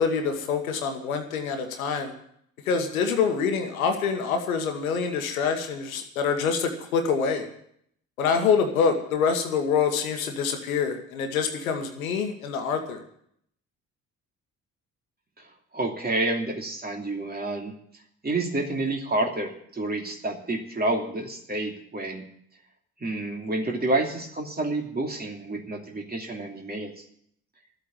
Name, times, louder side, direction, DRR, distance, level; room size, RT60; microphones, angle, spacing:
voice 1, 0.0-2.1 2.6-7.5 8.2-13.0, left 6 dB, 75° left, 5 dB, 1.5 m, -26 dB
voice 2, 15.7-17.7 18.2-22.2 23.0-27.0, right 2 dB, 20° right, 2 dB, 2.8 m, -29 dB
13.0 x 8.2 x 8.7 m, 0.70 s
figure-of-eight pair, 45°, 42 cm